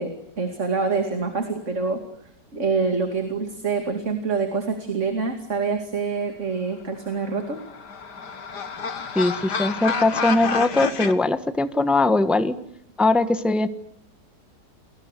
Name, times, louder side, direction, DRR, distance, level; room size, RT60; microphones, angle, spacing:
voice 1, 0.0-2.0 2.5-7.6, right 4 dB, 40° right, 5 dB, 2.9 m, -26 dB
sound 1, 7.2-11.1, left 5 dB, 65° left, 2.3 m, -29 dB
voice 2, 9.1-12.5 13.0-13.7, left 2 dB, ahead, 11 dB, 1.0 m, -21 dB
29.5 x 21.5 x 8.4 m, 0.70 s
omnidirectional pair, 1.9 m